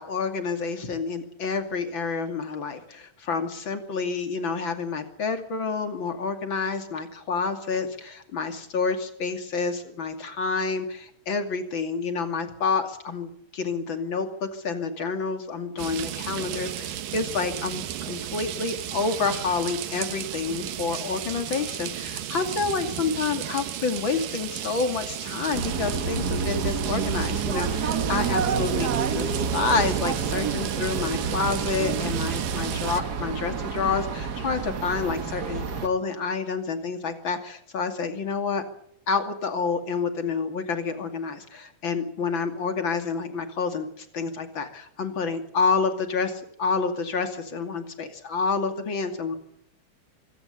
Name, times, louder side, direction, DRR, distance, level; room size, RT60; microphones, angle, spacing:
voice 1, 0.0-38.6 39.1-49.4, left 4 dB, 40° left, 7 dB, 2.9 m, -28 dB
sound 1, 15.8-33.0, right 11 dB, 85° right, 3.0 m, -33 dB
sound 2, 25.5-35.9, right 5 dB, 50° right, 1.2 m, -29 dB
25.0 x 17.0 x 8.4 m, 0.74 s
omnidirectional pair, 3.8 m